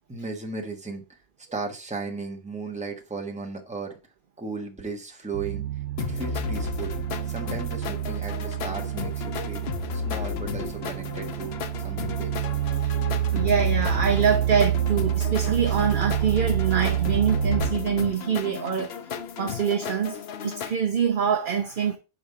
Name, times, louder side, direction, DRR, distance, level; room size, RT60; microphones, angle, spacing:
voice 1, 0.1-1.0 1.5-4.0 4.4-5.6 6.0-6.9 7.3-9.7 9.9-11.6 11.8-12.3, right 4 dB, 5° right, 1.1 m, -35 dB
sound 1, 5.3-17.7, right 11 dB, 90° right, 0.9 m, -28 dB
sound 2, 6.0-20.7, left 8 dB, 65° left, 0.9 m, -34 dB
voice 2, 13.3-18.9 19.4-20.2 20.4-22.0, right 7 dB, 50° right, 0.9 m, -25 dB
5.4 x 5.0 x 5.3 m
omnidirectional pair, 1.2 m